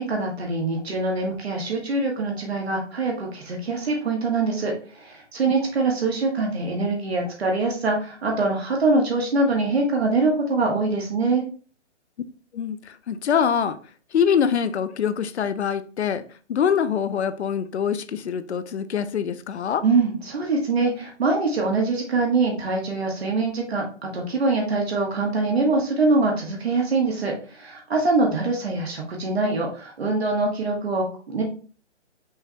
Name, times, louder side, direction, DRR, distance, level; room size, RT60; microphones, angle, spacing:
voice 1, 0.0-11.4 19.8-31.4, right 3 dB, 60° right, 1.3 m, -24 dB
voice 2, 12.5-13.8 14.1-16.2 16.5-19.8, left 7 dB, 65° left, 0.5 m, -24 dB
5.5 x 3.2 x 2.9 m
hypercardioid pair, 175°, 36 cm